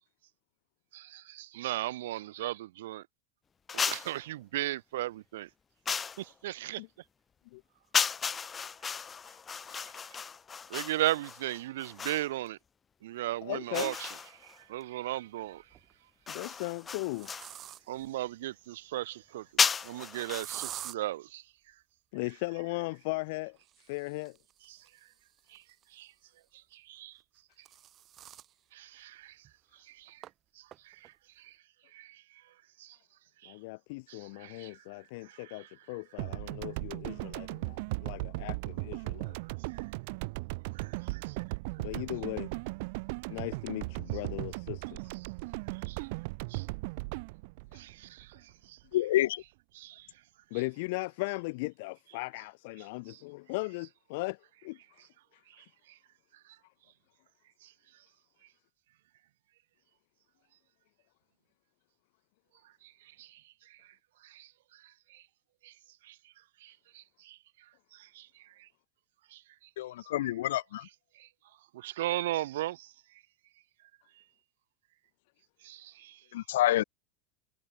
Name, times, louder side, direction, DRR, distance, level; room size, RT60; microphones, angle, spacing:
voice 1, 0.9-3.1 3.7-5.5 6.2-6.8 9.7-9.8 10.7-12.6 13.0-14.1 14.4-15.6 17.9-19.5 19.8-21.4 24.7-24.8 25.5-25.6 25.9-26.1 26.7-27.2 28.7-29.4 29.8-30.2 30.6-31.6 31.9-32.2 32.8-33.0 33.4-33.5 34.1-34.8 35.2-35.7 39.7-39.8 40.7-41.4 45.9-46.1 46.5-46.7 47.8-48.8 49.7-50.1 53.1-53.2 55.5-56.0 57.6-57.7 62.8-62.9 63.2-63.4 63.7-63.9 64.2-64.8 65.1-65.2 65.6-65.7 66.0-66.2 66.6-67.4 67.9-68.7 69.3-69.4 71.2-71.3 71.7-72.9 75.6-76.2, right 15 dB, 80° right, 2.5 m, -37 dB
sound 1, 3.7-4.2 5.8-6.3 7.9-12.3 13.7-14.6 16.3-17.5 19.6-20.4, left 6 dB, 15° left, 0.5 m, -33 dB
voice 2, 13.4-13.9 16.3-17.3 22.1-23.6 23.8-24.4 33.5-39.4 41.8-42.5 43.3-45.0 47.7-47.8 50.5-54.8 55.3-55.7, left 25 dB, 55° left, 1.9 m, -38 dB
sound 2, 14.0-14.1 15.5-15.9 16.5-18.1 20.4-21.0 23.6-26.2 27.2-28.5 29.0-29.1 29.4-29.5 30.2-30.3 30.7-31.1, right 11 dB, 25° right, 2.2 m, -47 dB
sound 3, 36.2-48.6, right 26 dB, 50° right, 2.2 m, -37 dB
voice 3, 48.9-49.4 69.8-70.9 76.3-76.8, left 14 dB, 85° left, 1.7 m, -28 dB
supercardioid pair, 170°, 0 cm